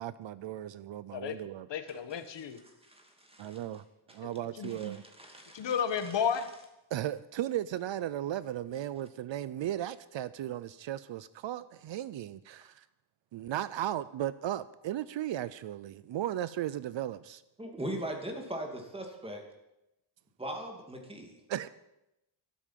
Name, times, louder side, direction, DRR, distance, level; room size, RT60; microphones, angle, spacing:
voice 1, 0.0-1.7 3.4-3.8 4.1-5.0 6.9-12.8 13.3-17.4 21.5-21.7, right 12 dB, 65° right, 17 dB, 0.6 m, -36 dB
voice 2, 1.7-2.6 4.6-4.8 5.5-6.5, left 7 dB, 60° left, 9 dB, 1.4 m, -32 dB
voice 3, 2.3-3.6 4.1-4.2 4.6-6.2 17.6-19.4 20.4-21.4, right 1 dB, 10° right, 3 dB, 2.5 m, -41 dB
12.5 x 12.5 x 7.5 m, 0.90 s
wide cardioid pair, 155°, 49 cm